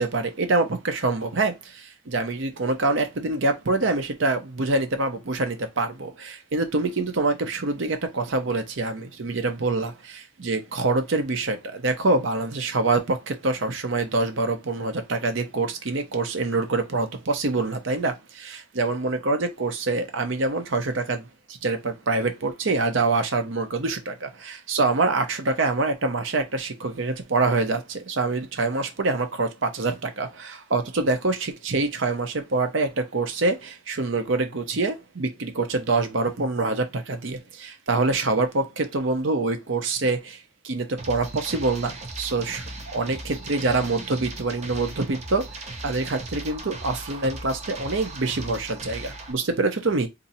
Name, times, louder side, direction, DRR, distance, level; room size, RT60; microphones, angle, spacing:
voice 1, 0.0-21.3 21.6-50.1, right 3 dB, 70° right, 0.8 m, -25 dB
sound 1, 41.0-49.3, right 2 dB, 35° right, 0.9 m, -38 dB
2.7 x 2.7 x 4.1 m
head